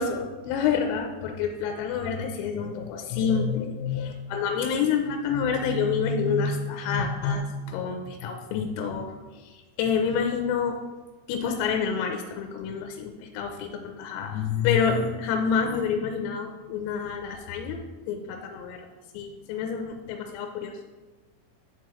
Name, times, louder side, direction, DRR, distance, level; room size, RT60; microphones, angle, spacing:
voice 1, 0.0-10.8 11.3-17.8 18.1-18.8 19.1-20.8, left 6 dB, 85° left, 3 dB, 3.2 m, -28 dB
10.5 x 4.6 x 3.0 m, 1.3 s
omnidirectional pair, 5.7 m